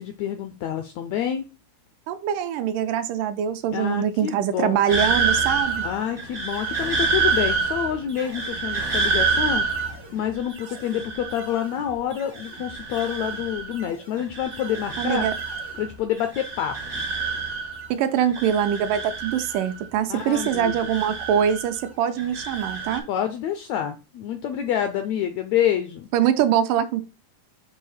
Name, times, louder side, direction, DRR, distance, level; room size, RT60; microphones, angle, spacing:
voice 1, 0.0-1.4 3.7-4.8 5.8-9.6 10.1-15.3 15.8-17.0 20.1-20.7 23.1-26.1, left 10 dB, 80° left, 1.6 m, -27 dB
voice 2, 2.1-5.9 15.0-15.3 17.9-23.0 26.1-27.0, right 9 dB, 85° right, 2.2 m, -23 dB
sound 1, 4.9-11.9 12.2-13.9 14.2-15.9 16.2-17.9 18.2-19.8 20.2-21.8 22.2-23.0, right 4 dB, 65° right, 0.5 m, -27 dB
6.5 x 2.8 x 5.5 m
omnidirectional pair, 3.8 m